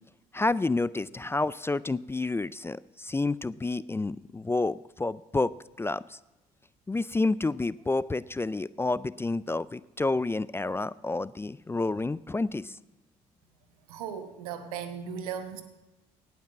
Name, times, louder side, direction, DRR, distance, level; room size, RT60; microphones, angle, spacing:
voice 1, 0.3-5.5 5.8-6.2 6.9-12.8, left 3 dB, 15° left, 19 dB, 0.3 m, -29 dB
voice 2, 13.9-15.6, right 7 dB, 85° right, 10 dB, 1.0 m, -37 dB
18.0 x 6.0 x 7.4 m, 1.0 s
hypercardioid pair, 55°, 18 cm